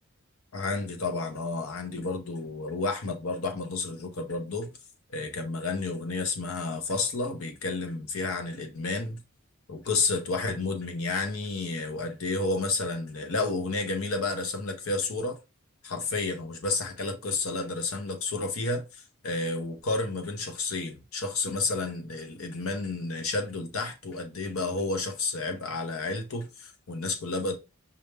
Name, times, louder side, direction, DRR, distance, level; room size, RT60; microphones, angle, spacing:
voice 1, 0.5-4.7 5.1-9.2 9.7-15.4 15.8-27.6, left 3 dB, 75° left, 0.8 m, -31 dB
5.5 x 2.3 x 3.3 m
head